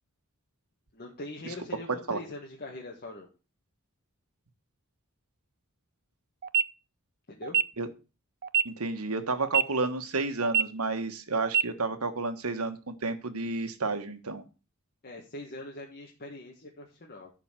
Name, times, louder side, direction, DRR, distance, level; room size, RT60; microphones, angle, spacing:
voice 1, 0.9-3.3 7.3-7.6 11.9-12.0 15.0-17.3, left 2 dB, 45° left, -1 dB, 1.7 m, -42 dB
sound 1, 6.4-6.6 7.4-7.6 8.4-8.6 9.4-9.6 10.4-10.6 11.4-11.6, right 8 dB, 45° right, 0.4 m, -24 dB
voice 2, 8.6-14.4, right 3 dB, 80° right, 8 dB, 1.4 m, -31 dB
11.0 x 4.7 x 7.5 m, 0.32 s
head